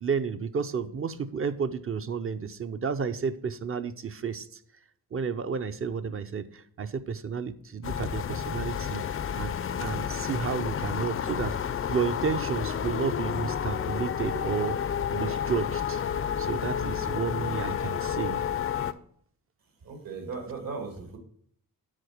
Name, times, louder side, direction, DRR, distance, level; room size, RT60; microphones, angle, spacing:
voice 1, 0.0-4.6 5.1-9.0 9.4-9.5 9.8-16.0 16.4-18.4, right 6 dB, 35° right, 11 dB, 0.6 m, -32 dB
sound 1, 7.8-18.9, left 8 dB, 40° left, 0.4 m, -30 dB
voice 2, 19.8-21.2, right 4 dB, 65° right, 3 dB, 2.2 m, -37 dB
9.8 x 4.3 x 6.4 m, 0.63 s
wide cardioid pair, 120°, 36 cm